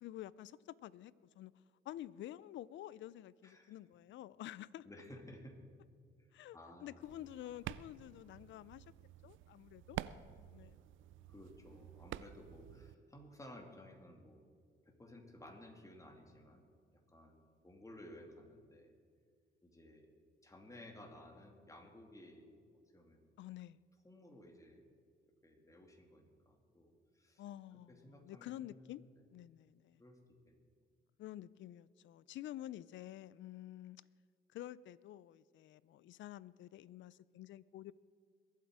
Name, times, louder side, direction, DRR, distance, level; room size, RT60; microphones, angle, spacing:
voice 1, 0.0-1.5 1.8-4.8 6.3-8.8 9.2-10.0 10.5-10.8 23.4-23.8 27.4-29.0 29.3-30.0 31.2-34.0 34.5-37.9, left 13 dB, 70° left, 20 dB, 0.5 m, -49 dB
voice 2, 3.4-3.7 4.8-5.7 6.2-6.3 6.5-7.2 11.3-14.5 14.8-16.6 17.1-18.9 19.6-20.1 20.4-22.5 22.9-23.3 24.0-24.8 25.2-27.4 27.7-29.1 30.0-30.2 30.5-30.6, left 1 dB, 15° left, 3 dB, 2.5 m, -56 dB
sound 1, 7.0-12.9, right 13 dB, 80° right, 0.5 m, -49 dB
22.5 x 8.2 x 4.8 m, 2.1 s
cardioid pair, 90°, 20 cm